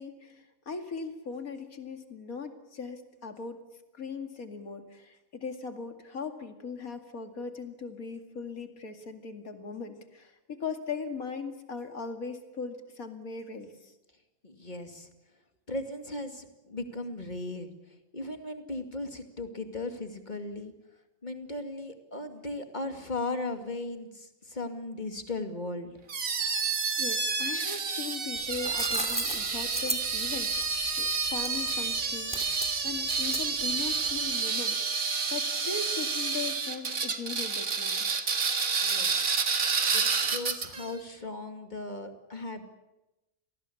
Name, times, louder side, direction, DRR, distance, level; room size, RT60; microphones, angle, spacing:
voice 1, 0.0-3.6 3.9-13.9 26.6-35.0 35.3-38.1, left 5 dB, 80° left, 7 dB, 2.8 m, -39 dB
voice 2, 14.4-15.1 15.7-17.7 18.1-20.7 21.2-25.9 38.8-39.4 39.9-42.7, left 2 dB, 30° left, 7 dB, 2.4 m, -37 dB
sound 1, 26.1-40.9, right 5 dB, 75° right, 2.3 m, -29 dB
sound 2, 28.4-34.3, right 1 dB, 5° right, 2.6 m, -36 dB
28.0 x 19.5 x 8.4 m, 0.96 s
omnidirectional pair, 1.5 m